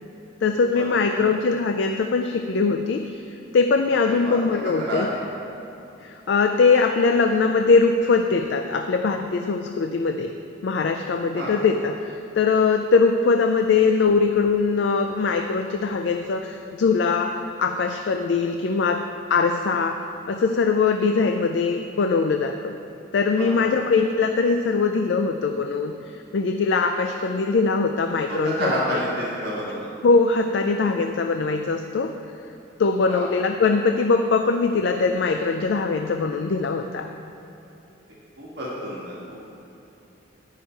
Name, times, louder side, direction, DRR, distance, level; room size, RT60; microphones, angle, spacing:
voice 1, 0.4-3.2 3.5-5.1 6.0-10.3 10.6-22.7 23.1-28.8 30.0-32.2 32.8-37.1, left 4 dB, 65° left, 6 dB, 0.3 m, -21 dB
voice 2, 4.8-5.2 11.3-11.5 23.4-23.8 28.3-29.7 33.0-33.3 38.4-39.4, equal, 55° right, -7 dB, 1.7 m, -29 dB
9.6 x 5.7 x 4.5 m, 2.9 s
head